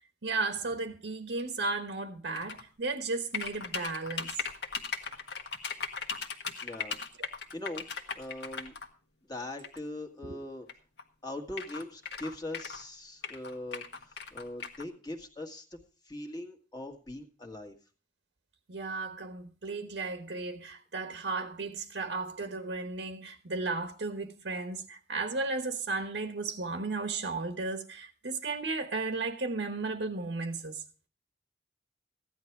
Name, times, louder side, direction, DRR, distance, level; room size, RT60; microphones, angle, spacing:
voice 1, 0.2-4.4 10.2-10.4 18.7-30.8, right 3 dB, 75° right, 1.2 m, -34 dB
sound 1, 2.3-2.6 3.3-8.9 9.6-9.8 10.7-10.8 11.0-11.1 11.5-12.8 13.2-14.8, left 5 dB, 70° left, 1.5 m, -38 dB
voice 2, 6.6-7.0 7.5-7.8 8.1-8.7 9.3-10.7 11.2-13.8 14.3-15.8 16.0-17.7, left 1 dB, 20° left, 1.7 m, -41 dB
15.5 x 10.5 x 4.6 m
head